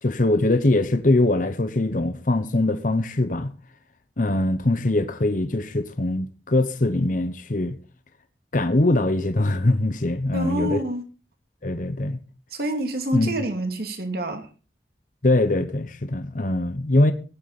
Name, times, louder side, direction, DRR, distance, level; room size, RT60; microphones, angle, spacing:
voice 1, 0.0-3.5 4.2-7.8 8.5-10.8 11.6-12.2 13.1-13.3 15.2-17.1, left 2 dB, 45° left, 0.9 m, -22 dB
voice 2, 10.3-11.0 12.5-14.5, right 1 dB, 55° right, 2.6 m, -27 dB
16.0 x 11.0 x 4.1 m
head